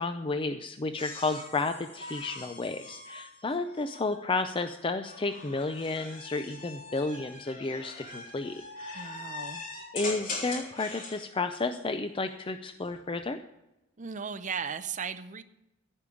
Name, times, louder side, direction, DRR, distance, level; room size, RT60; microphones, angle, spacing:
voice 1, 0.0-9.2 9.9-13.4, left 3 dB, 25° left, 0.5 m, -32 dB
sound 1, 1.0-4.2 5.0-11.2 12.7-13.2, left 2 dB, 45° left, 3.6 m, -42 dB
voice 2, 8.9-9.6 14.0-15.4, right 6 dB, 40° right, 0.6 m, -36 dB
15.5 x 5.4 x 8.4 m
head